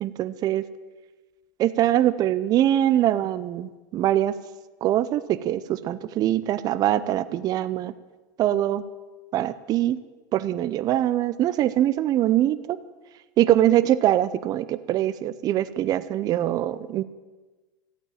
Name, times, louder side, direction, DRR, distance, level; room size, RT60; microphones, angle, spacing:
voice 1, 0.0-0.6 1.6-4.4 4.8-7.9 8.4-8.8 9.3-10.0 10.3-12.8 13.4-17.0, right 12 dB, 35° right, 14 dB, 0.6 m, -23 dB
13.5 x 8.9 x 8.9 m, 1.2 s
supercardioid pair, 120°, 11 cm